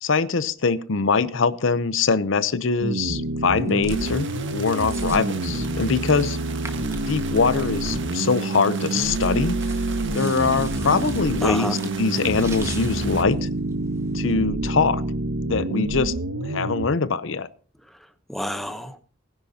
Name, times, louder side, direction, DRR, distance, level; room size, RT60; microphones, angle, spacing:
voice 1, 0.0-6.4 7.1-9.6 10.1-13.4 14.1-15.0 15.5-16.1 16.5-17.5, left 4 dB, 65° left, 15 dB, 0.7 m, -23 dB
sound 1, 2.8-16.9, right 2 dB, 85° right, 1.0 m, -27 dB
sound 2, 3.6-14.3, right 3 dB, 15° right, 1.6 m, -44 dB
sound 3, 3.9-13.2, right 6 dB, 60° right, 1.5 m, -39 dB
voice 2, 11.4-11.7 17.9-19.0, equal, ahead, 9 dB, 0.9 m, -30 dB
19.5 x 10.5 x 2.8 m, 0.42 s
head